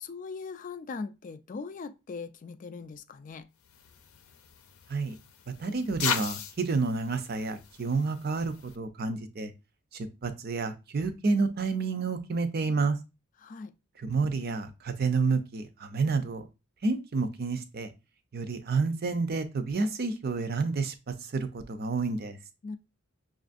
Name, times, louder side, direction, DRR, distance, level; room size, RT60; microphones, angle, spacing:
voice 1, 0.0-3.5 13.4-13.7 22.6-22.8, left 4 dB, 35° left, 0.3 m, -40 dB
sound 1, 3.6-8.8, left 7 dB, 85° left, 0.6 m, -38 dB
voice 2, 5.6-9.5 9.9-13.0 14.0-16.4 16.8-17.9 18.3-22.4, right 4 dB, 45° right, 0.5 m, -29 dB
5.8 x 2.5 x 2.5 m
head